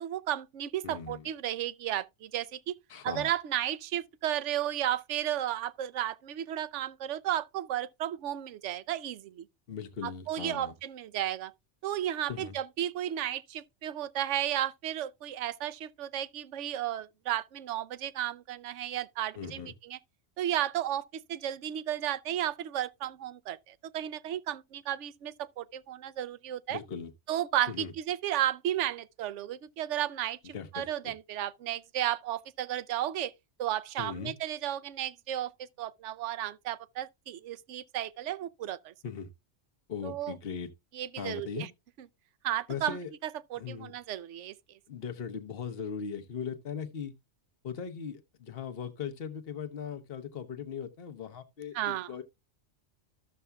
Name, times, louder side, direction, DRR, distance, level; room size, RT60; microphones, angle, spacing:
voice 1, 0.0-2.7 3.0-9.4 10.0-11.5 11.8-20.0 20.4-26.8 27.3-33.3 33.6-35.5 35.8-38.9 40.0-40.3 40.9-41.7 42.4-44.5 51.7-52.1, right 12 dB, 80° right, 0.9 m, -33 dB
voice 2, 0.8-1.3 2.9-3.3 9.7-10.7 12.3-12.6 19.4-19.7 26.7-27.1 27.7-27.9 30.5-31.1 34.0-34.3 39.0-39.3 39.9-40.7 41.2-41.7 42.7-43.1 43.5-43.9 44.9-47.1 47.6-52.2, left 7 dB, 55° left, 1.2 m, -39 dB
14.0 x 6.8 x 2.3 m
omnidirectional pair, 1.2 m